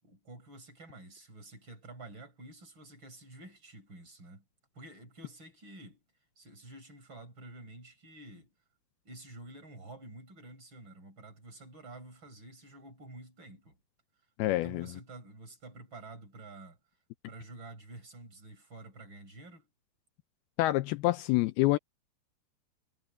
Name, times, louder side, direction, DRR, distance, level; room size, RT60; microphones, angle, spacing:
voice 1, 0.0-4.4 4.7-6.0 6.4-8.5 9.1-13.8 14.5-16.8 17.3-19.7, right 2 dB, 30° right, 5.3 m, -49 dB
voice 2, 14.4-14.9 20.6-21.8, left 18 dB, 80° left, 2.4 m, -27 dB
omnidirectional pair, 4.6 m